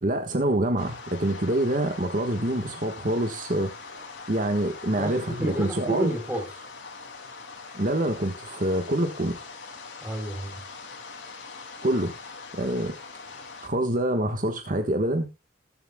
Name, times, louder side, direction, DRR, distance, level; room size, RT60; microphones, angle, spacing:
voice 1, 0.0-6.1 7.7-9.4 11.8-12.1 12.5-12.9 13.6-15.3, right 1 dB, 45° right, 1.3 m, -26 dB
sound 1, 0.8-13.7, left 4 dB, 85° left, 2.7 m, -42 dB
voice 2, 4.9-6.7 10.0-10.6, right 1 dB, 10° right, 3.5 m, -32 dB
20.0 x 7.8 x 2.2 m
head